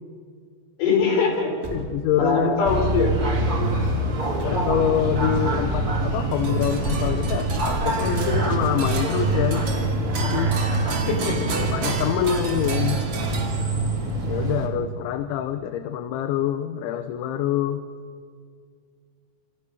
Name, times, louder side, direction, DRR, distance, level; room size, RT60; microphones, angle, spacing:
voice 1, 0.8-1.5 2.1-3.1 10.9-11.5, left 4 dB, 55° left, 3 dB, 6.0 m, -22 dB
Truck, 1.3-2.3 4.1-5.0 6.6-7.6 9.2-10.2 11.4-12.3 13.1-14.0, left 1 dB, 5° right, 3.7 m, -36 dB
voice 2, 1.7-2.6 3.5-4.0 4.4-9.7 10.1-10.5 11.7-13.0 14.3-17.8, left 10 dB, 80° left, 9 dB, 3.2 m, -26 dB
sound 1, 2.6-14.7, right 2 dB, 20° right, 3.2 m, -25 dB
sound 2, 6.3-14.0, right 3 dB, 45° right, 3.7 m, -33 dB
29.0 x 27.5 x 6.6 m, 2.1 s
omnidirectional pair, 5.6 m